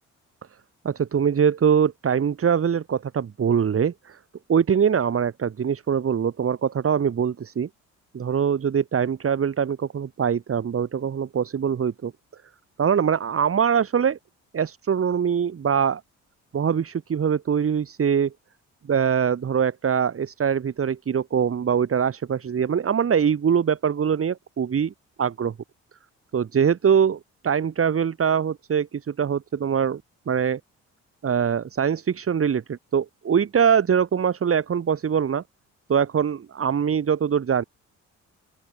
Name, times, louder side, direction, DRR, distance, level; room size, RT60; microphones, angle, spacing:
voice 1, 0.8-4.2 4.5-7.7 8.1-12.1 12.8-14.2 14.5-16.0 16.5-18.3 18.9-24.9 25.2-25.5 26.3-30.0 30.3-30.6 31.2-35.4 35.9-37.6, right 7 dB, 50° right, 4.0 m, -23 dB
open air
cardioid pair, 90°, 30 cm